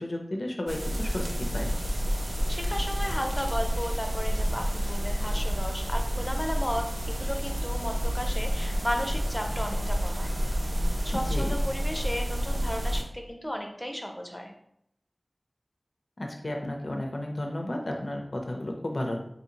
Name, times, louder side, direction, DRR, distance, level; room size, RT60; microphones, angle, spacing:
voice 1, 0.0-1.7 11.1-11.6 16.2-19.2, left 1 dB, 70° left, 1 dB, 0.5 m, -33 dB
sound 1, 0.7-13.0, equal, 75° right, 0.6 m, -29 dB
voice 2, 2.5-10.3 11.0-14.5, equal, 15° left, 3 dB, 0.6 m, -34 dB
4.0 x 2.6 x 2.8 m, 0.72 s
wide cardioid pair, 50°, 0 cm